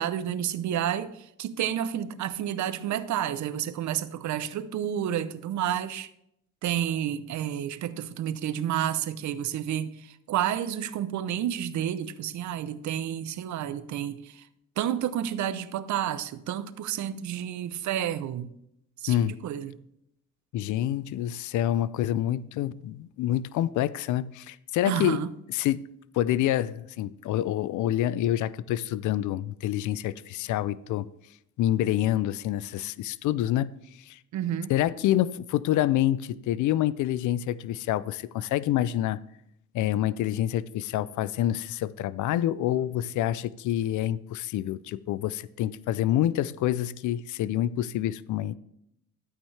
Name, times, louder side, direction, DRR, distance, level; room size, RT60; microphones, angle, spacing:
voice 1, 0.0-6.1 6.6-14.4 14.8-18.5 19.0-19.8 24.9-25.3 34.3-34.7, right 10 dB, 70° right, 0.7 m, -30 dB
voice 2, 19.1-19.4 20.5-25.8 26.1-31.1 31.6-33.8 34.1-34.2 34.7-39.2 39.7-48.6, left 12 dB, 75° left, 0.5 m, -27 dB
12.0 x 8.8 x 3.3 m
cardioid pair, 90°, 30 cm